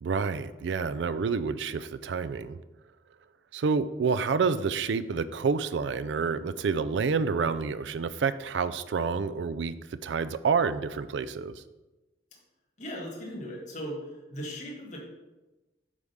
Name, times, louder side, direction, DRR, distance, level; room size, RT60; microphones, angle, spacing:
voice 1, 0.0-2.6 3.5-9.7 10.0-11.6, right 5 dB, 80° right, 14 dB, 0.4 m, -28 dB
voice 2, 12.8-14.0 14.3-15.0, equal, 45° left, -2 dB, 1.4 m, -37 dB
8.1 x 3.6 x 5.4 m, 1.1 s
head